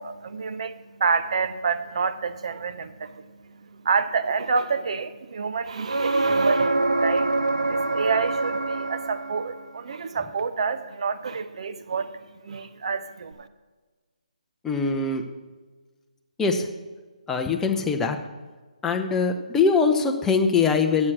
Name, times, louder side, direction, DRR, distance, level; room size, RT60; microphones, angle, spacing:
voice 1, 0.0-13.5, right 5 dB, 50° right, 11 dB, 0.7 m, -28 dB
sound 1, 5.9-9.6 13.3-13.4, right 2 dB, 90° right, 0.7 m, -24 dB
voice 2, 14.6-15.2 16.4-16.7 17.3-18.2 18.8-21.1, left 5 dB, 10° left, 4 dB, 0.7 m, -22 dB
9.7 x 7.4 x 6.3 m, 1.3 s
figure-of-eight pair, 145°, 4 cm